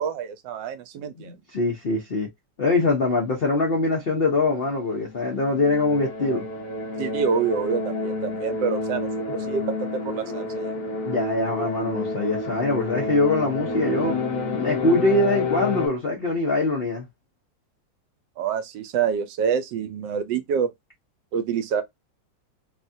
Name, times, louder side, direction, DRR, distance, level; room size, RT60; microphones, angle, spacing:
voice 1, 0.0-1.4 7.0-10.8 18.4-20.7 21.3-21.8, right 6 dB, 75° right, 1.3 m, -27 dB
voice 2, 1.2-2.3 2.6-6.4 11.0-14.1 14.5-17.1, left 2 dB, 45° left, 0.8 m, -23 dB
sound 1, 4.7-15.9, left 3 dB, 65° left, 1.4 m, -29 dB
3.4 x 2.4 x 2.6 m
omnidirectional pair, 2.0 m